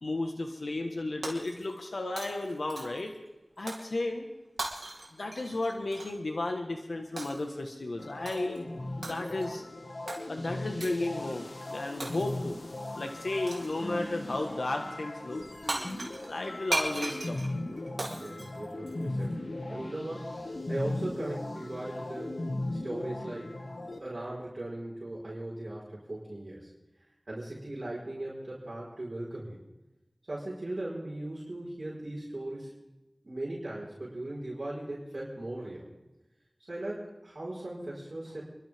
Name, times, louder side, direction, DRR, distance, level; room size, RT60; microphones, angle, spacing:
voice 1, 0.0-3.1 3.6-4.3 5.1-8.7 9.1-9.6 10.3-12.5 12.9-15.4 16.2-17.4, left 2 dB, 85° left, 3 dB, 1.4 m, -33 dB
Shatter, 1.2-1.9 2.2-3.1 3.7-3.9 4.6-6.2 7.2-7.5 8.3-8.6 9.0-9.5 10.1-10.2 10.8-11.1 12.0-12.5 13.5-13.8 15.4-15.5 15.7-19.3, right 2 dB, 85° right, 2.5 m, -38 dB
sound 1, 8.0-24.0, left 2 dB, 70° left, 1.7 m, -38 dB
voice 2, 18.2-22.4 22.7-23.5 24.0-26.7 27.3-29.6 30.3-32.7 33.2-35.9 36.7-38.4, right 1 dB, 55° right, -6 dB, 4.7 m, -38 dB
29.0 x 12.0 x 3.6 m, 1.0 s
wide cardioid pair, 40°, 0 cm